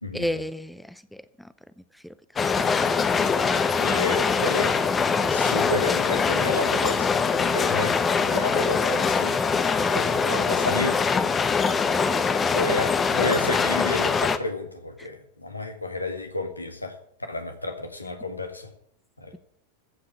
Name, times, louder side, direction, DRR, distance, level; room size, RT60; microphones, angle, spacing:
voice 1, 0.1-2.2 2.4-2.5 3.9-4.3 5.1-5.4 11.9-12.5 15.0-15.1, equal, ahead, 14 dB, 0.6 m, -35 dB
sound 1, 2.4-14.4, left 5 dB, 20° left, 1.0 m, -23 dB
voice 2, 3.8-4.8 5.3-9.4 9.9-11.0 12.5-17.0 17.3-18.7 19.2-19.4, left 2 dB, 85° left, 6 dB, 1.7 m, -31 dB
15.0 x 5.8 x 8.4 m, 0.68 s
figure-of-eight pair, 90°, 0 cm